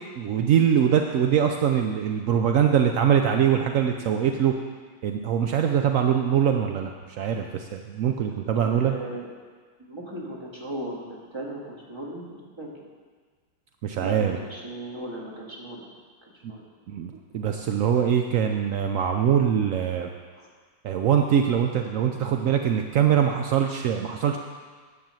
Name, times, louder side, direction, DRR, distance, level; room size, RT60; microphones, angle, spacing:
voice 1, 0.2-4.5 5.0-6.9 7.2-8.9 13.8-14.4 16.4-16.5 16.9-20.1 20.8-24.4, right 8 dB, 75° right, 4 dB, 0.7 m, -23 dB
voice 2, 8.5-9.3 9.8-12.7 14.0-15.9 16.2-16.6 20.3-20.5, right 1 dB, 15° right, -3 dB, 1.7 m, -37 dB
10.0 x 6.4 x 7.5 m, 1.5 s
omnidirectional pair, 2.0 m